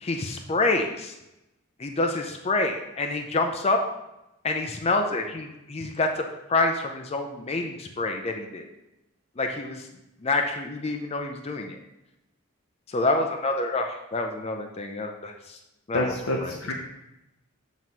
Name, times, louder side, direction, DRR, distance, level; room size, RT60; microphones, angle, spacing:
voice 1, 0.0-1.1 1.8-3.8 4.4-8.7 9.4-9.9 10.2-11.8 12.9-15.6 15.9-16.5, left 2 dB, 30° left, 4 dB, 0.5 m, -27 dB
voice 2, 15.9-16.7, left 2 dB, 85° left, 1 dB, 0.7 m, -27 dB
7.5 x 3.1 x 5.4 m, 0.93 s
head